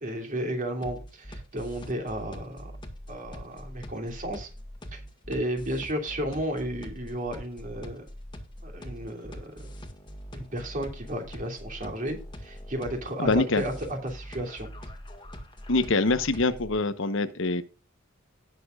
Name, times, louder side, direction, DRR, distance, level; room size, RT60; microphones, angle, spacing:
voice 1, 0.0-2.7 3.1-4.5 4.9-5.0 5.3-8.0 8.6-9.7 10.3-14.7, right 1 dB, 40° right, 2 dB, 2.9 m, -33 dB
sound 1, 0.8-16.8, equal, 25° left, 1.8 m, -43 dB
voice 2, 13.2-13.6 15.7-17.6, left 3 dB, 65° left, 12 dB, 1.0 m, -24 dB
18.0 x 6.8 x 2.4 m, 0.33 s
head